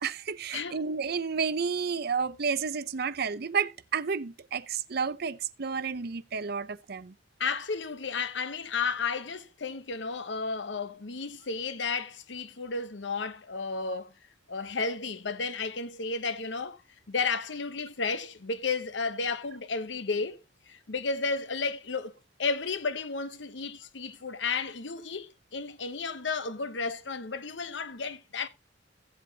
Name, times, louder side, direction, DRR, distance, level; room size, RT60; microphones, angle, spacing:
voice 1, 0.0-7.1, right 5 dB, 60° right, 0.6 m, -31 dB
voice 2, 7.4-14.1 14.5-16.8 17.1-20.4 20.7-22.1 22.4-28.5, left 4 dB, 75° left, 1.0 m, -33 dB
16.0 x 8.1 x 2.8 m
head